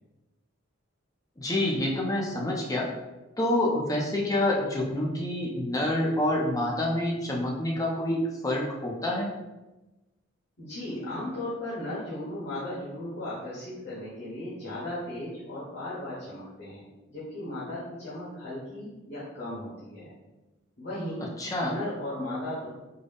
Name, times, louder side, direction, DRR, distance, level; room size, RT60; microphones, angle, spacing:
voice 1, 1.4-2.9 3.4-9.3 21.4-21.7, left 1 dB, 15° left, -2 dB, 0.4 m, -27 dB
voice 2, 10.6-16.8 17.1-20.1 20.8-21.3 21.6-22.7, left 1 dB, 55° left, -10 dB, 1.1 m, -36 dB
3.7 x 2.1 x 3.4 m, 1.1 s
head